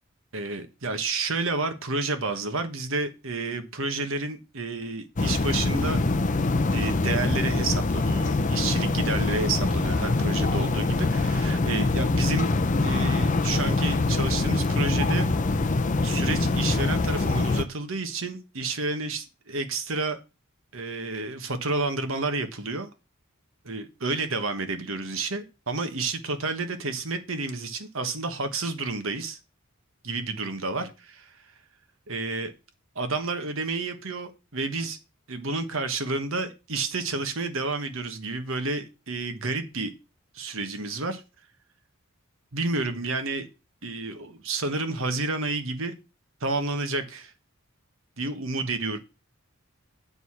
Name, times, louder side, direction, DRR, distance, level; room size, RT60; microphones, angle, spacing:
voice 1, 0.3-6.0 6.7-12.5 12.8-15.3 16.0-20.2 20.7-22.9 23.6-29.4 30.0-31.3 32.1-32.5 32.9-35.0 35.3-39.9 40.3-41.2 42.5-43.5 43.8-46.0 46.4-47.3 48.2-49.0, right 3 dB, 65° right, 1.3 m, -30 dB
sound 1, 5.2-17.6, left 3 dB, 35° left, 0.6 m, -24 dB
7.9 x 4.9 x 5.7 m
head